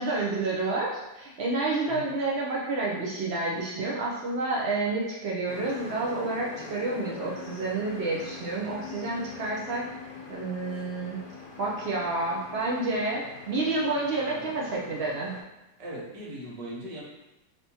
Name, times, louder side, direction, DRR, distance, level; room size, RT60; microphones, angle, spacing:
voice 1, 0.0-9.8 10.3-11.2 11.6-15.3, right 3 dB, 70° right, -4 dB, 0.6 m, -29 dB
sound 1, 5.5-15.4, left 4 dB, 75° left, 1.2 m, -43 dB
voice 2, 14.3-14.8 15.8-17.0, right 1 dB, 85° right, -5 dB, 1.7 m, -40 dB
3.4 x 2.9 x 2.7 m, 0.98 s
omnidirectional pair, 1.8 m